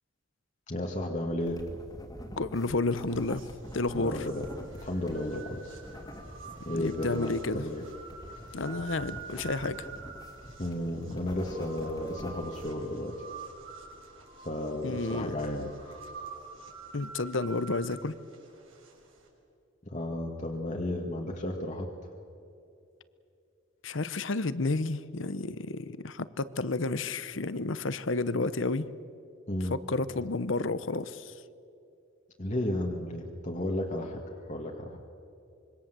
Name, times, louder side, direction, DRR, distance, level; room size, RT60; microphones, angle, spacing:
voice 1, 0.7-1.7 3.9-4.5 4.8-5.8 6.7-7.8 10.6-13.2 14.4-16.0 19.8-21.9 29.5-29.8 32.4-35.1, left 1 dB, 35° left, 1 dB, 1.8 m, -33 dB
sound 1, 1.4-12.7, equal, 20° left, 2.2 m, -46 dB
voice 2, 2.4-3.4 3.7-4.2 6.7-7.6 8.5-9.9 14.8-15.3 16.9-18.2 23.8-28.9 29.7-31.3, left 3 dB, 70° left, 15 dB, 0.9 m, -31 dB
sound 2, 2.9-19.3, right 5 dB, 80° right, 6.0 m, -47 dB
26.0 x 23.0 x 7.6 m, 2.7 s
head